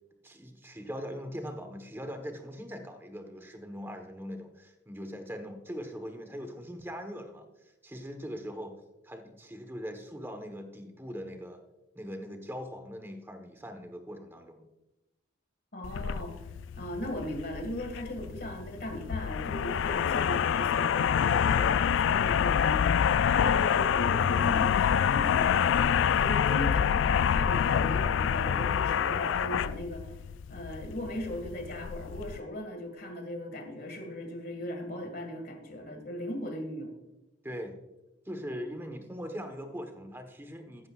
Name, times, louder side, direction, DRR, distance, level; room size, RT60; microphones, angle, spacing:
voice 1, 0.2-8.8 9.0-11.6 11.9-14.7 37.4-37.8 38.2-40.9, equal, 10° right, 6 dB, 1.2 m, -41 dB
voice 2, 15.7-16.4 16.8-30.1 30.5-36.9, equal, 55° left, 5 dB, 2.1 m, -38 dB
sound 1, 15.8-32.4, left 8 dB, 90° left, 0.3 m, -27 dB
14.5 x 11.5 x 2.5 m, 0.98 s
head